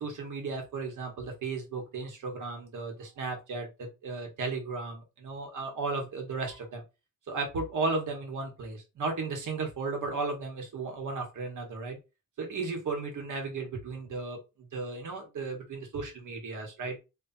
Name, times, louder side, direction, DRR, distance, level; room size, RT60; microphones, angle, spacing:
voice 1, 0.0-6.8 7.3-12.0 12.4-17.0, right 3 dB, 70° right, 3 dB, 1.6 m, -35 dB
4.2 x 3.3 x 2.7 m, 0.26 s
wide cardioid pair, 150°, 32 cm